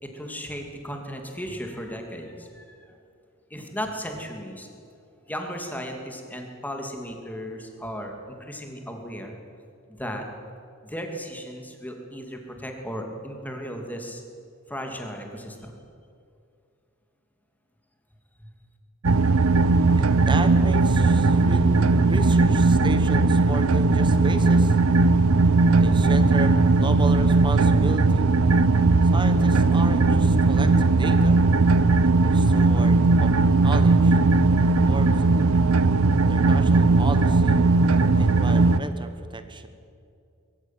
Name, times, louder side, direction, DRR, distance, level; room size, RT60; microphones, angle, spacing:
voice 1, 0.0-3.0 3.5-4.7 5.3-9.3 9.9-10.2 10.8-14.2 14.7-15.7 18.4-18.5, equal, 10° left, 3 dB, 2.7 m, -35 dB
sound 1, 19.0-38.8, right 3 dB, 75° right, 0.8 m, -18 dB
voice 2, 19.9-24.7 25.8-28.3 29.1-31.4 32.2-33.3 33.6-34.2 34.6-35.5 36.3-37.6 37.9-39.7, right 2 dB, 20° right, 9 dB, 1.3 m, -34 dB
21.5 x 15.0 x 9.1 m, 2.4 s
head